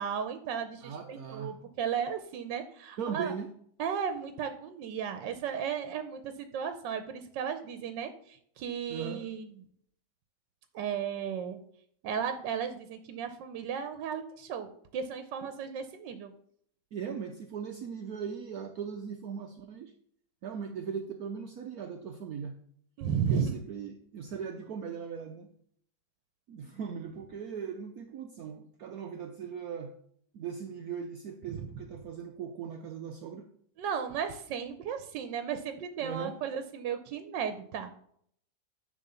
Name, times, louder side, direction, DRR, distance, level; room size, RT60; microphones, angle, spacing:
voice 1, 0.0-3.3 3.8-9.5 10.7-11.6 12.0-16.3 23.0-23.6 31.5-31.6 33.8-37.9, right 7 dB, 85° right, 9 dB, 1.4 m, -35 dB
voice 2, 0.8-1.5 3.0-3.5 8.9-9.3 15.4-15.5 16.9-19.9 20.4-22.5 23.3-25.5 26.5-29.9 30.3-33.5 36.0-36.4, right 6 dB, 65° right, 6 dB, 1.0 m, -39 dB
10.5 x 3.6 x 6.9 m, 0.65 s
omnidirectional pair, 1.9 m